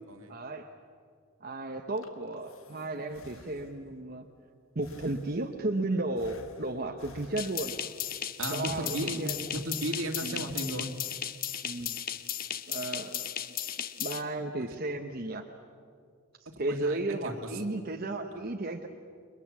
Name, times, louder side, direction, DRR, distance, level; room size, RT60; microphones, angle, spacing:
voice 1, 0.3-0.7 1.4-4.3 4.7-7.7 8.5-9.5 10.2-10.5 11.6-12.0 12.7-13.3 14.0-15.4 16.4-18.9, right 2 dB, 45° right, 3 dB, 1.1 m, -34 dB
Breathing, 1.7-4.0 4.8-5.7 6.2-8.0, left 2 dB, 70° left, 1.5 m, -54 dB
sound 1, 7.4-14.2, left 10 dB, 40° left, 0.9 m, -36 dB
voice 2, 8.4-10.9 16.6-17.3, right 1 dB, 75° right, 4 dB, 2.4 m, -35 dB
29.5 x 22.5 x 7.4 m, 2.2 s
head